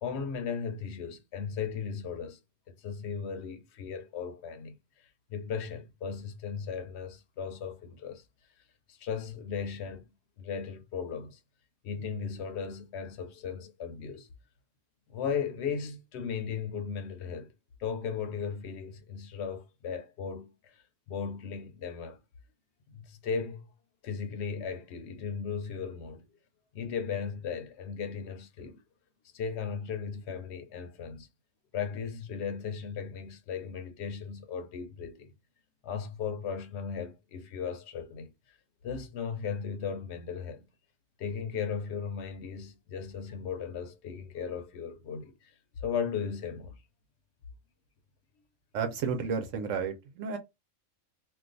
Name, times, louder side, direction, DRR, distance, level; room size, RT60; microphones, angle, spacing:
voice 1, 0.0-2.4 2.7-4.8 5.3-8.2 8.9-10.1 10.4-11.4 11.8-14.3 15.1-17.5 17.8-20.7 21.1-22.2 22.9-23.6 24.0-26.3 26.7-28.8 29.3-31.3 31.7-35.3 35.8-38.3 38.8-40.6 41.2-45.5 45.8-46.8, left 6 dB, 65° left, 0.9 m, -36 dB
voice 2, 48.7-50.4, right 6 dB, 80° right, 1.0 m, -32 dB
2.6 x 2.3 x 3.8 m
omnidirectional pair, 1.3 m